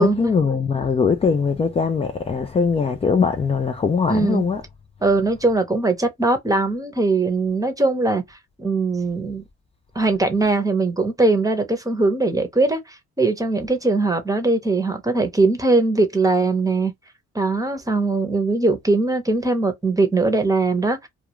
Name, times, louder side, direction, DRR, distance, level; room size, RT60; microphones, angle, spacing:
voice 1, 0.0-4.6, left 5 dB, 20° left, 0.3 m, -21 dB
voice 2, 4.1-4.4 5.0-9.4 9.9-16.9 17.3-21.1, right 3 dB, 10° right, 0.8 m, -20 dB
2.4 x 2.3 x 2.9 m
cardioid pair, 90°, 30 cm